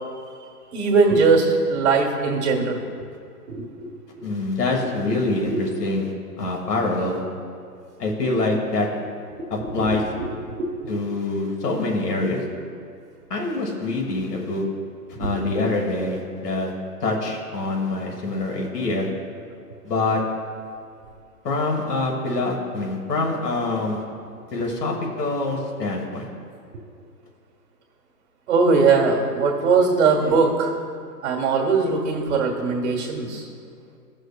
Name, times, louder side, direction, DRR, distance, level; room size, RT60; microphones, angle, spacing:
voice 1, 0.7-2.8 3.5-3.6 5.5-5.6 9.4-9.5 9.8-10.3 10.6-10.7 15.2-15.3 28.5-30.7 31.2-33.4, right 4 dB, 45° right, 1 dB, 1.6 m, -20 dB
voice 2, 4.2-6.1 6.4-7.2 8.0-8.9 9.5-10.0 10.9-12.4 13.3-14.6 15.2-16.7 17.0-19.1 19.8-20.2 21.4-24.0 24.5-26.3, left 2 dB, 70° left, 0 dB, 1.6 m, -25 dB
15.0 x 6.4 x 2.2 m, 2.3 s
hypercardioid pair, 165°, 48 cm